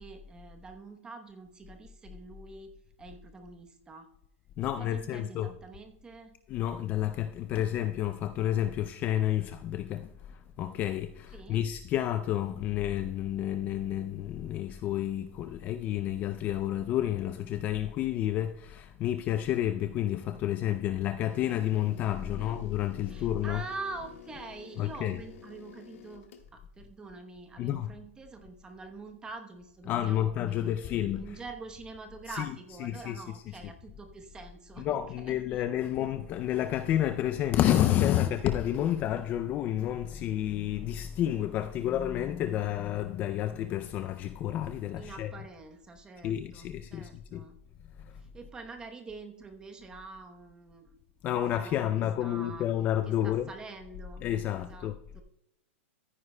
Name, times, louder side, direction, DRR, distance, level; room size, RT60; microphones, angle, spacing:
voice 1, 0.0-4.1 4.6-6.3 11.3-11.7 22.2-22.7 23.1-35.9 44.9-47.6 48.1-51.0 51.3-52.7 53.0-54.3 54.6-55.2, right 3 dB, 10° right, 0.9 m, -46 dB
voice 2, 4.6-5.6 6.5-23.6 24.8-25.2 27.6-27.9 29.8-31.4 32.3-33.6 34.8-45.5 46.2-47.5 51.2-53.5 54.2-55.0, left 12 dB, 25° left, 0.4 m, -30 dB
sound 1, 21.3-26.5, left 12 dB, 75° left, 1.5 m, -52 dB
14.5 x 9.6 x 2.2 m
supercardioid pair, 160°, 7 cm